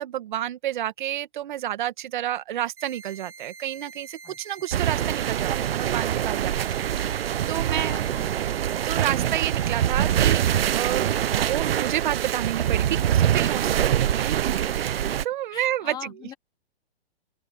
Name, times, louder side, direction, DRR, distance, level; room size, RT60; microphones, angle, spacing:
voice 1, 0.0-6.7 7.1-8.0 8.8-10.5 10.7-16.1, right 12 dB, 50° right, 1.6 m, -30 dB
sound 1, 2.8-11.8, right 4 dB, 10° right, 1.6 m, -45 dB
sound 2, 4.7-15.2, right 10 dB, 65° right, 0.9 m, -24 dB
voice 2, 6.4-6.9 7.6-8.5 15.5-16.3, left 10 dB, 10° left, 1.4 m, -43 dB
open air
hypercardioid pair, 160°, 32 cm